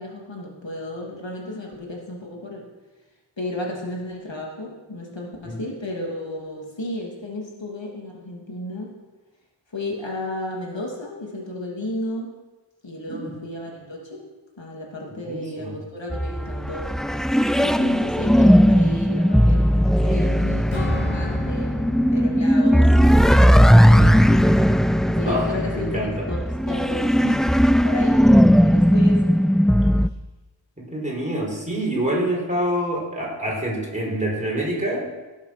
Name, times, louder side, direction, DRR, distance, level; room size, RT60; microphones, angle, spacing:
voice 1, 0.0-2.7 3.4-8.9 9.7-12.3 12.8-14.2 14.6-16.9 17.6-22.9 23.4-24.3 25.1-27.5 27.8-28.3 28.6-29.2, left 1 dB, 70° left, -2 dB, 2.9 m, -33 dB
voice 2, 13.1-13.4 15.1-15.8 25.2-26.3 28.3-28.7 30.8-35.0, right 1 dB, 15° right, -3 dB, 4.7 m, -27 dB
sound 1, 16.1-30.1, equal, ahead, 0.4 m, -17 dB
Strum, 20.7-25.4 25.8-26.0, left 4 dB, 85° left, 1.6 m, -36 dB
18.0 x 7.3 x 6.1 m, 1.2 s
wide cardioid pair, 50°, 46 cm